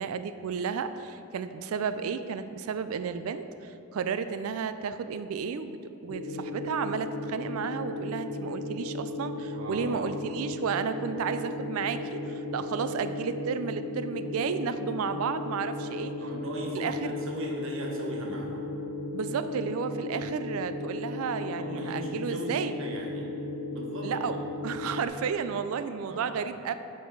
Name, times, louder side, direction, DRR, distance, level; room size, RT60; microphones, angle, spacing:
voice 1, 0.0-5.8 6.0-16.1 16.7-17.1 19.1-22.7 24.0-24.4 24.6-26.7, right 6 dB, 80° right, 11 dB, 0.4 m, -32 dB
sound 1, 6.1-25.1, left 2 dB, 60° left, 0.7 m, -35 dB
voice 2, 9.5-10.2 16.2-18.6 21.6-23.3 23.7-24.5 26.1-26.4, equal, 65° right, -1 dB, 1.1 m, -38 dB
8.0 x 4.7 x 4.7 m, 2.9 s
head